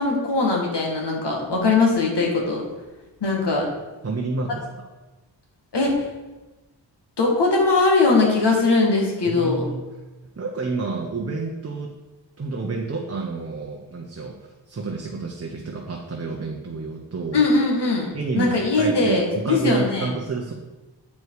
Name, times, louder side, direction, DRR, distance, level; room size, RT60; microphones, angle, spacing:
voice 1, 0.0-2.6 3.2-3.7 5.7-6.1 7.2-9.6 17.3-20.1, left 3 dB, 65° left, -1 dB, 2.0 m, -20 dB
voice 2, 4.0-4.8 9.2-9.8 10.4-11.9 12.4-17.4 18.1-20.5, right 3 dB, 35° right, 1 dB, 0.8 m, -29 dB
8.4 x 4.8 x 4.8 m, 1.1 s
wide cardioid pair, 105°, 44 cm